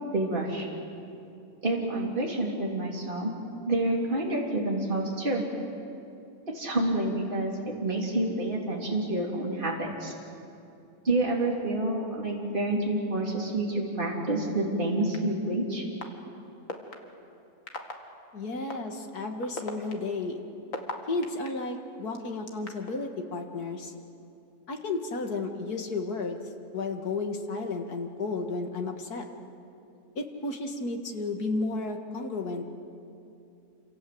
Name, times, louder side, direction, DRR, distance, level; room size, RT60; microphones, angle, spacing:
voice 1, 0.1-0.7 1.6-3.3 3.7-5.4 6.5-7.5 7.8-10.1 11.0-15.8, right 2 dB, 35° right, -2 dB, 3.6 m, -28 dB
sound 1, 15.1-15.2 16.0-16.1 16.7-16.9 17.7-17.9 18.7-18.8 19.4-21.5 22.1-22.9, left 3 dB, 60° left, 2.4 m, -35 dB
voice 2, 18.3-20.4 21.1-23.9 24.7-26.4 26.7-29.2 30.2-32.7, left 3 dB, 85° left, 4 dB, 2.5 m, -33 dB
28.0 x 27.0 x 7.9 m, 2.7 s
omnidirectional pair, 1.6 m